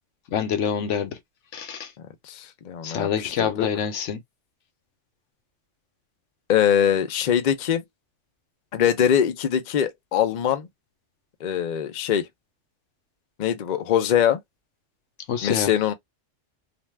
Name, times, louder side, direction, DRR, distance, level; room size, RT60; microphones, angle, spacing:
voice 1, 0.3-1.1 1.5-1.9 2.8-4.2 15.3-15.7, left 8 dB, 75° left, 1.0 m, -26 dB
voice 2, 2.2-3.7 6.5-7.8 8.7-10.7 11.4-12.3 13.4-14.4 15.4-15.9, left 9 dB, 55° left, 0.5 m, -22 dB
2.6 x 2.2 x 3.2 m
omnidirectional pair, 1.3 m